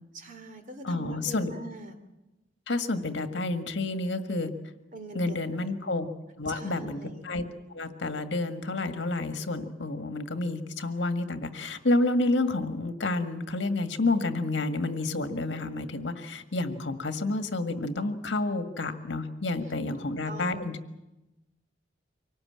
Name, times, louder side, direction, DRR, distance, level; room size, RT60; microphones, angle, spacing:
voice 1, 0.1-2.0 4.9-6.1 6.5-7.2 20.3-20.6, right 1 dB, 45° right, 7 dB, 3.1 m, -43 dB
voice 2, 0.8-1.5 2.7-4.5 5.2-6.1 6.4-7.4 7.7-20.7, left 2 dB, 65° left, 8 dB, 1.8 m, -29 dB
24.5 x 19.0 x 8.7 m, 0.99 s
head